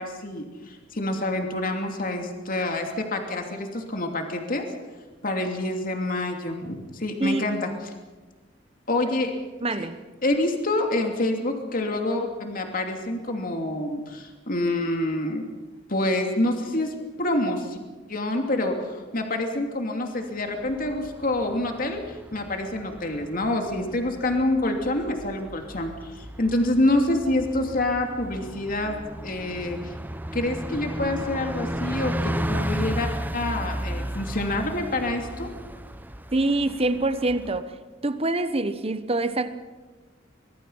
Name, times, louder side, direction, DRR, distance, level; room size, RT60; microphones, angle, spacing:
voice 1, 0.0-4.6 5.2-7.7 8.9-9.3 9.7-9.9 10.2-15.4 15.9-17.8 18.1-29.0 29.2-29.9 30.3-35.5, left 1 dB, 45° left, 4 dB, 2.8 m, -27 dB
voice 2, 9.6-10.0 36.3-37.7 38.0-39.5, right 2 dB, 30° right, 11 dB, 1.2 m, -25 dB
Bus, 20.5-37.6, equal, 10° right, 0.9 m, -34 dB
24.0 x 22.0 x 5.7 m, 1.3 s
head